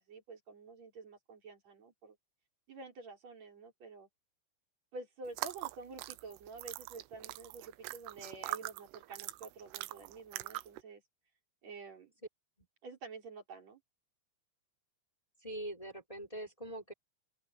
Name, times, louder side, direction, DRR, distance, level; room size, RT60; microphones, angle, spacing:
voice 1, 0.0-2.2 2.7-4.1 4.9-11.0 11.6-12.1 12.8-13.8, right 3 dB, 35° right, 5.0 m, -49 dB
sound 1, 5.3-10.8, right 18 dB, 85° right, 3.2 m, -43 dB
voice 2, 15.4-16.9, right 1 dB, 5° left, 4.6 m, -43 dB
open air
omnidirectional pair, 5.9 m